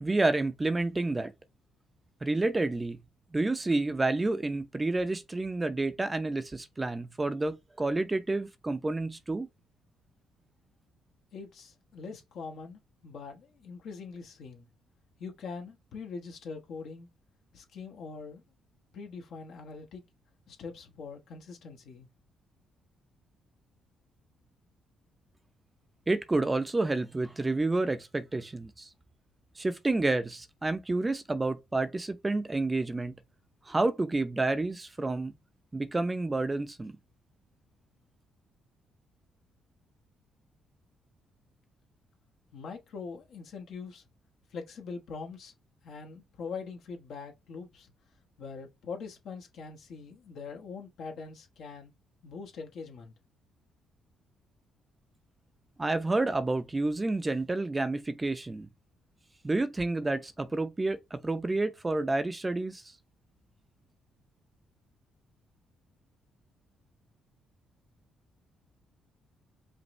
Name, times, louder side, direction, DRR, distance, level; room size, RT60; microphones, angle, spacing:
voice 1, 0.0-1.3 2.2-3.0 3.3-9.5 26.1-28.9 29.6-33.2 33.7-35.3 35.7-36.9 55.8-58.7 59.4-62.9, right 2 dB, 20° right, 0.6 m, -29 dB
voice 2, 11.3-14.7 15.2-17.1 17.5-18.4 18.9-20.0 20.5-22.1 42.5-44.0 44.5-45.5 45.8-47.9 48.4-51.9 52.2-53.1, left 5 dB, 75° left, 1.3 m, -43 dB
5.2 x 2.6 x 3.1 m
cardioid pair, 90°, 0 cm